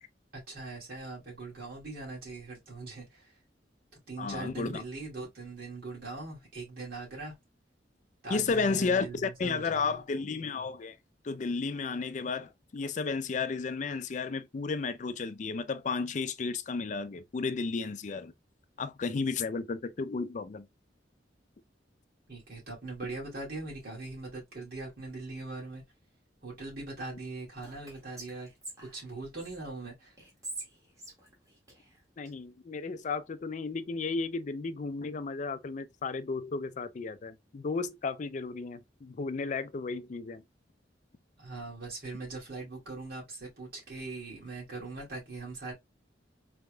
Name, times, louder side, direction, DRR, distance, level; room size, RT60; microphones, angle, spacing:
voice 1, 0.3-3.3 4.1-7.3 8.2-10.0 22.3-25.8 26.4-28.5 28.8-30.1 41.4-45.7, right 3 dB, 55° right, 2.4 m, -41 dB
voice 2, 4.2-4.8 8.3-11.0 11.2-18.3 18.8-20.7 32.2-40.4, left 4 dB, 40° left, 0.4 m, -33 dB
Whispering, 27.6-29.6 30.2-32.3, right 2 dB, 20° right, 1.8 m, -46 dB
4.4 x 3.4 x 2.2 m
head